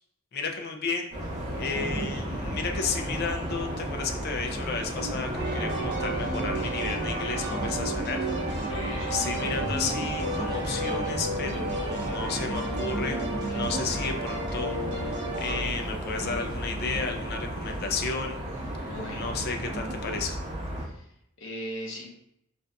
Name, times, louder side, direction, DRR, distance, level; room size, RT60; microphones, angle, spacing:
voice 1, 0.3-1.1 1.6-8.3 8.6-8.7 9.1-13.2 13.5-18.4 18.8-20.4, left 4 dB, 50° left, 4 dB, 0.4 m, -33 dB
sound 1, 1.1-20.8, equal, 35° right, 1.0 m, -34 dB
sound 2, 1.7-20.2, right 2 dB, 20° right, 0.6 m, -38 dB
sound 3, 5.3-15.6, right 1 dB, 55° right, 0.9 m, -33 dB
voice 2, 8.6-9.7 18.8-19.4 20.8-22.1, left 1 dB, 65° left, -1 dB, 0.9 m, -40 dB
3.8 x 2.5 x 2.2 m, 0.75 s
head